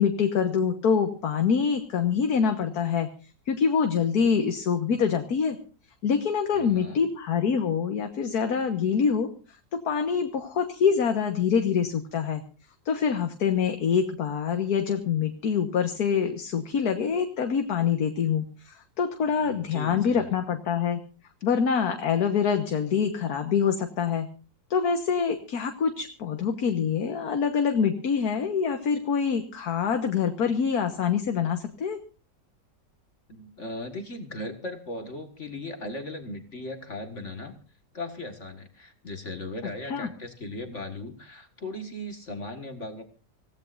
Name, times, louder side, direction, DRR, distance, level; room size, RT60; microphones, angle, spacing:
voice 1, 0.0-3.1 3.5-5.6 6.0-9.3 9.7-12.4 12.9-21.0 21.4-24.3 24.7-32.0 39.8-40.1, left 6 dB, 60° left, 6 dB, 1.8 m, -25 dB
voice 2, 6.5-7.1 19.4-20.3 33.3-37.5 37.9-43.0, left 1 dB, 45° left, 6 dB, 2.0 m, -38 dB
26.0 x 17.0 x 2.6 m, 0.35 s
omnidirectional pair, 1.9 m